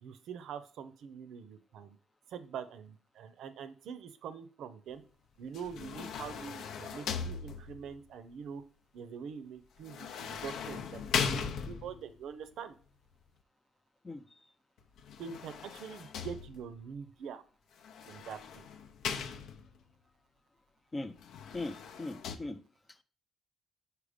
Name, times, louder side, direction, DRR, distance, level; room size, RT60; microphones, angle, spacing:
voice 1, 0.0-2.0 2.3-5.0 5.4-8.6 8.9-11.4 11.7-12.7 15.2-17.4 18.1-18.6, right 7 dB, 65° right, 0.6 m, -44 dB
sound 1, 5.5-8.0 9.8-12.1 15.0-16.8 17.8-19.8 21.2-22.4, left 6 dB, 70° left, 0.6 m, -38 dB
voice 2, 14.0-14.5 20.9-21.2 21.5-22.6, left 2 dB, 15° left, 0.3 m, -40 dB
4.9 x 4.6 x 5.1 m
cardioid pair, 165°, 0 cm